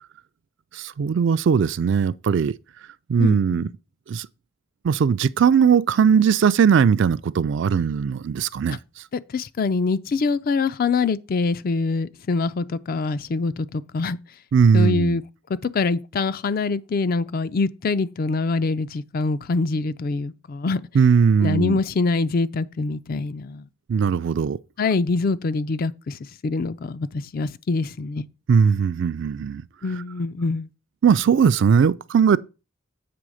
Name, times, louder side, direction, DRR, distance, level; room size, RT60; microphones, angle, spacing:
voice 1, 0.7-2.5 3.1-3.7 4.1-4.3 4.8-8.8 14.5-15.2 20.9-21.8 23.9-24.6 28.5-29.6 31.0-32.4, right 6 dB, 60° right, 0.3 m, -19 dB
voice 2, 3.2-3.7 9.3-14.2 14.7-15.2 15.6-20.8 21.4-23.6 24.8-26.1 26.4-28.3 29.8-30.7, left 4 dB, 45° left, 0.4 m, -24 dB
7.7 x 3.4 x 6.3 m
head